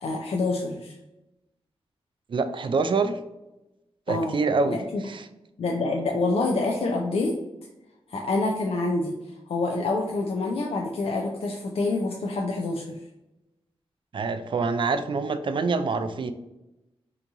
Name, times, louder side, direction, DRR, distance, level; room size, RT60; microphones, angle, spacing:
voice 1, 0.0-0.9 4.1-4.4 4.7-5.0 5.6-7.3 8.1-9.1 9.5-13.0, left 3 dB, 65° left, 0 dB, 0.4 m, -27 dB
voice 2, 2.3-3.2 4.1-4.8 5.0-5.3 14.1-16.3, right 4 dB, 50° right, 10 dB, 0.4 m, -25 dB
2.8 x 2.6 x 3.5 m, 0.95 s
cardioid pair, 60°, 11 cm